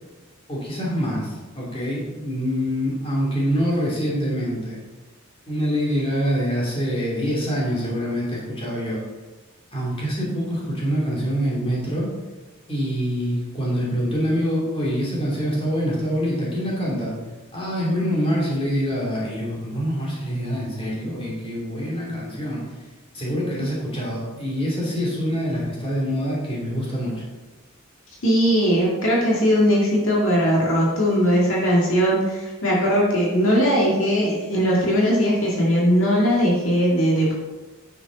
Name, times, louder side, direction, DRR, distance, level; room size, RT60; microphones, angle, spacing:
voice 1, 0.5-4.8 5.5-9.0 9.7-12.1 12.7-17.1 17.5-22.6 23.1-27.1, equal, 25° left, -5 dB, 3.0 m, -25 dB
voice 2, 28.2-37.3, equal, 65° left, -4 dB, 2.3 m, -19 dB
9.7 x 6.9 x 4.1 m, 1.2 s
head